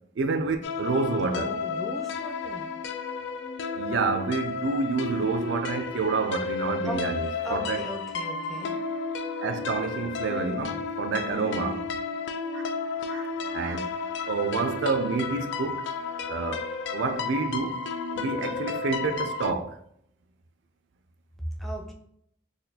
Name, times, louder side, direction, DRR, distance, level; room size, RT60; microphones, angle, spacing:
voice 1, 0.2-1.5 3.7-7.9 9.4-11.9 12.5-12.7 13.1-13.9 14.2-15.9 16.3-17.8 18.1-19.8, right 4 dB, 85° right, 0.4 m, -29 dB
sound 1, 0.6-19.5, left 5 dB, 75° left, 0.3 m, -32 dB
voice 2, 1.3-2.7 6.8-7.0 7.4-8.7 10.2-10.6 11.3-11.8 21.6-21.9, right 1 dB, ahead, 0.5 m, -37 dB
4.1 x 2.3 x 2.7 m
head